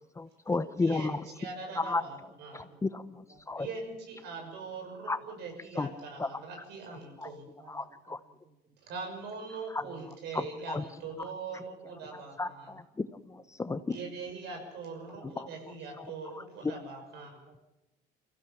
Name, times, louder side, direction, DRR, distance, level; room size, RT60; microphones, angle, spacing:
voice 1, 0.1-1.2 1.8-2.0 2.5-3.7 5.1-5.2 5.7-5.9 6.2-6.4 7.2-7.3 7.7-8.2 9.7-9.8 10.3-10.8 11.5-11.6 12.1-14.0 15.2-15.5 16.0-16.4, left 3 dB, 15° left, 13 dB, 0.8 m, -34 dB
voice 2, 0.8-2.7 3.6-7.5 8.8-12.7 13.9-17.4, right 4 dB, 80° right, 3 dB, 6.2 m, -42 dB
voice 3, 2.5-2.8 3.3-3.8 5.8-6.0 7.6-8.8 10.8-11.6 11.9-12.3 14.0-14.1 15.1-15.3 15.7-16.0 16.6-16.7 17.0-17.1 17.5-17.6, right 4 dB, 40° right, 5 dB, 2.3 m, -60 dB
24.0 x 15.5 x 7.3 m, 0.98 s
cardioid pair, 110°, 17 cm